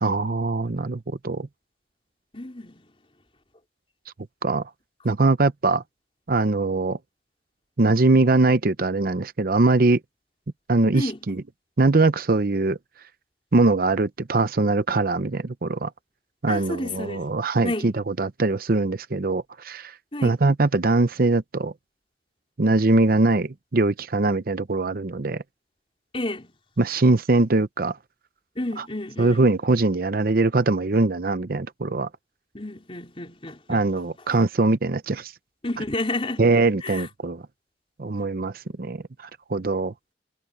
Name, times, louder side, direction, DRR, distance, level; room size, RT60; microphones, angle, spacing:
voice 1, 0.0-1.5 4.4-4.7 5.0-5.8 6.3-7.0 7.8-10.0 10.7-11.4 11.8-12.8 13.5-15.9 16.4-19.9 20.2-21.7 22.6-25.4 26.8-28.0 29.2-32.1 33.7-35.3 36.4-37.4 38.0-39.9, right 3 dB, 55° right, 0.7 m, -22 dB
voice 2, 2.3-2.9 10.9-11.2 16.5-17.2 17.6-17.9 20.1-20.4 26.1-26.5 28.6-29.4 32.5-33.8 35.6-36.4 36.8-37.1, left 2 dB, 30° left, 4.2 m, -31 dB
head